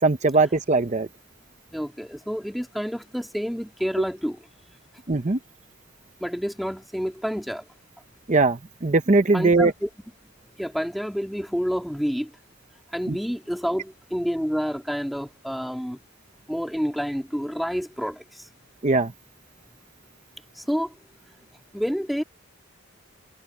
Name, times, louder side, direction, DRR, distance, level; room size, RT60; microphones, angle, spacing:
voice 1, 0.0-1.1 5.1-5.4 8.3-9.7 13.1-13.2 18.8-19.1, right 3 dB, 35° right, 0.7 m, -20 dB
voice 2, 1.7-4.5 6.2-7.6 9.3-9.9 10.6-12.3 12.9-16.0 16.5-18.5 20.6-21.0 21.7-22.2, equal, ahead, 2.7 m, -28 dB
head